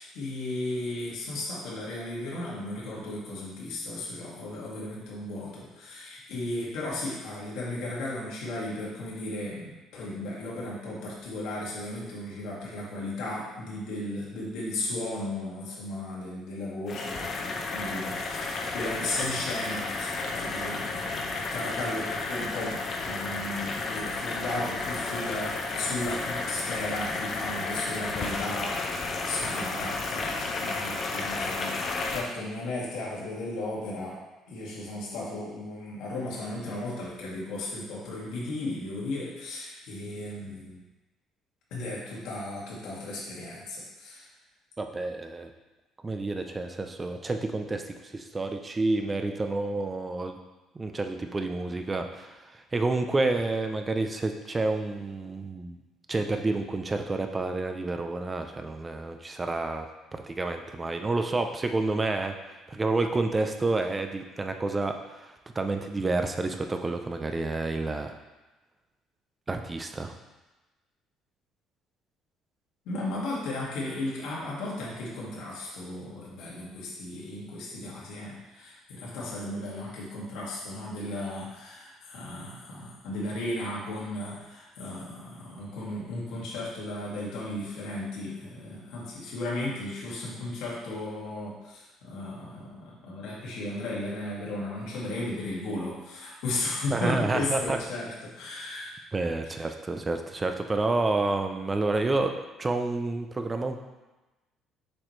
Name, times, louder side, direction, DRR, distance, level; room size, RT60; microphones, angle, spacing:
voice 1, 0.0-40.8 41.7-44.3 72.9-98.9, left 1 dB, 80° left, -5 dB, 2.0 m, -35 dB
sound 1, 16.9-32.2, left 3 dB, 40° left, 0.8 m, -32 dB
voice 2, 44.8-45.5 46.0-50.4 50.7-55.8 56.1-62.3 62.7-68.2 69.5-70.1 96.9-97.8 99.1-102.3 102.6-103.8, right 3 dB, 20° right, 6 dB, 0.5 m, -29 dB
7.4 x 5.0 x 3.2 m, 1.1 s
cardioid pair, 140°, 0 cm